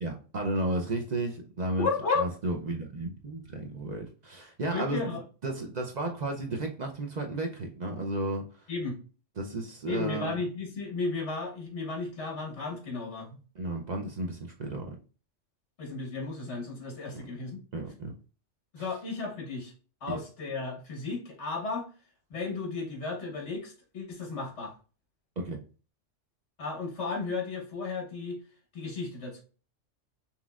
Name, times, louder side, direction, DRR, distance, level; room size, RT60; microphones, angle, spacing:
voice 1, 0.0-1.9 2.2-8.4 9.4-10.4 13.6-14.9 17.1-17.2 17.7-18.1 20.1-20.2 25.4-25.6, right 2 dB, 45° right, 0.6 m, -33 dB
voice 2, 1.8-2.3 4.7-5.2 8.7-9.0 9.9-13.4 15.8-17.6 18.7-19.7 20.0-21.9 22.3-24.7 26.6-28.4 28.7-29.4, left 4 dB, 65° left, 1.7 m, -34 dB
5.5 x 3.0 x 2.4 m
omnidirectional pair, 1.3 m